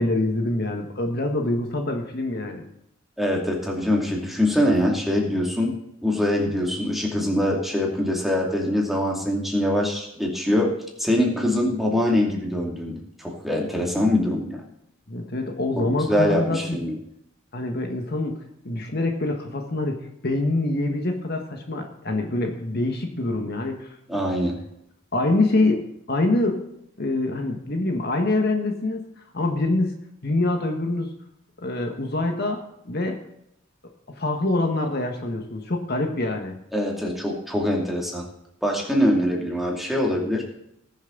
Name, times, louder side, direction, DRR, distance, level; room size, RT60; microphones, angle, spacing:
voice 1, 0.0-2.6 15.1-16.8 17.5-18.4 18.6-20.0 20.2-24.5 25.1-25.8 26.1-26.6 27.0-29.0 29.3-29.9 30.2-31.1 31.6-32.6 32.8-33.2 34.2-36.6, left 2 dB, 50° left, 3 dB, 1.5 m, -25 dB
voice 2, 3.2-5.7 6.0-14.6 15.8-16.9 24.1-24.6 36.7-38.2 38.6-40.4, left 1 dB, ahead, -1 dB, 2.4 m, -23 dB
20.5 x 7.3 x 3.9 m, 0.78 s
head